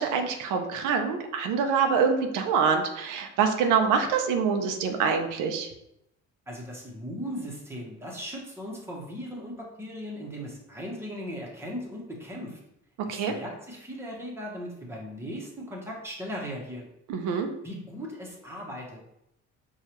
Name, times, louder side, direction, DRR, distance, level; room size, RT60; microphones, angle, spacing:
voice 1, 0.0-5.7 13.1-13.3 17.1-17.5, right 6 dB, 90° right, 4 dB, 0.6 m, -25 dB
voice 2, 6.5-12.6 13.1-16.9 17.6-19.0, equal, 10° right, -2 dB, 0.9 m, -38 dB
4.6 x 2.3 x 2.9 m, 0.81 s
cardioid pair, 130°, 30 cm